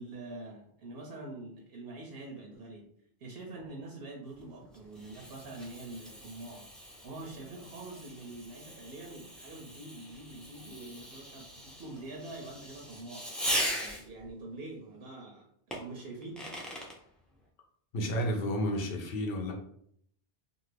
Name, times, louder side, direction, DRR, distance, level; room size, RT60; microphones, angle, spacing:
voice 1, 0.0-2.9 3.2-6.7 7.0-13.3 13.8-16.5, right 2 dB, 75° right, 0 dB, 0.8 m, -45 dB
Fireworks, 4.3-14.3 15.7-17.0, equal, ahead, 0.3 m, -40 dB
voice 2, 17.9-19.5, equal, 65° left, 1 dB, 0.9 m, -31 dB
2.6 x 2.5 x 3.2 m, 0.67 s
omnidirectional pair, 1.0 m